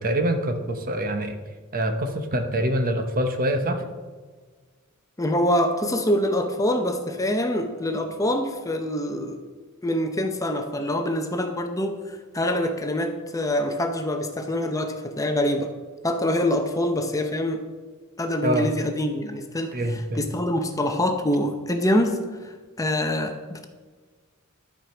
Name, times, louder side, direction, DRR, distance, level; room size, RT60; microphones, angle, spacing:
voice 1, 0.0-1.4 1.7-3.8 18.4-18.7 19.7-20.2, right 1 dB, 45° right, 6 dB, 1.0 m, -25 dB
voice 2, 5.2-9.4 9.8-15.7 16.0-17.6 18.2-23.7, left 1 dB, 15° left, 5 dB, 0.8 m, -25 dB
12.0 x 5.0 x 6.0 m, 1.4 s
head